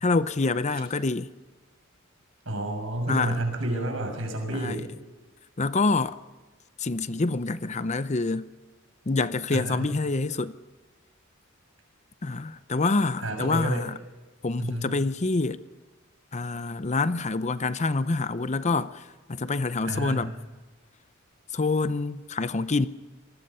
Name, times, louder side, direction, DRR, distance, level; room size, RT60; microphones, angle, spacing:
voice 1, 0.0-1.3 3.1-3.4 4.5-4.9 5.6-6.2 6.8-8.5 9.1-10.5 12.2-14.0 14.4-15.6 16.3-19.0 19.3-20.3 21.5-22.9, left 3 dB, 35° left, 0.6 m, -26 dB
voice 2, 2.5-4.9 9.5-9.9 13.2-13.9 14.6-14.9 19.8-20.2, right 1 dB, 70° right, 6.1 m, -30 dB
26.5 x 19.5 x 5.6 m
head